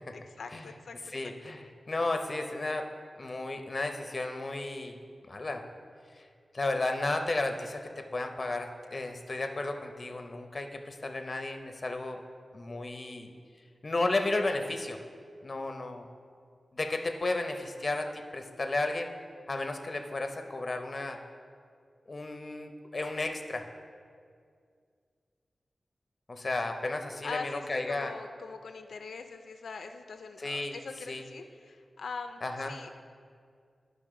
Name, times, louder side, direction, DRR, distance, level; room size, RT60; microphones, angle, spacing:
voice 1, 0.1-1.0 27.2-32.4 32.7-33.0, left 4 dB, 90° left, 7 dB, 0.3 m, -42 dB
voice 2, 1.1-2.9 3.2-5.0 5.3-5.6 6.1-6.2 6.5-12.2 12.5-13.3 13.8-15.0 15.4-16.0 16.7-19.1 19.5-21.2 22.1-23.6 26.3-28.1 30.4-30.8 31.1-31.2 32.4-32.7, left 2 dB, 35° left, 5 dB, 0.6 m, -33 dB
10.5 x 5.2 x 3.7 m, 2.2 s
wide cardioid pair, 105°, 0 cm